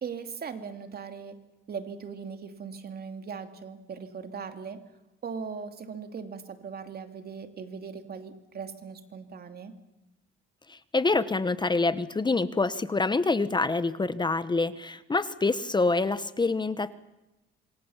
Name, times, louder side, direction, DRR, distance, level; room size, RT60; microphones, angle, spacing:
voice 1, 0.0-1.4 1.7-4.8 5.2-9.7, right 6 dB, 50° right, 7 dB, 2.7 m, -39 dB
voice 2, 10.7-16.9, left 3 dB, 20° left, 14 dB, 1.0 m, -26 dB
27.0 x 23.0 x 7.3 m, 0.98 s
cardioid pair, 90°, 20 cm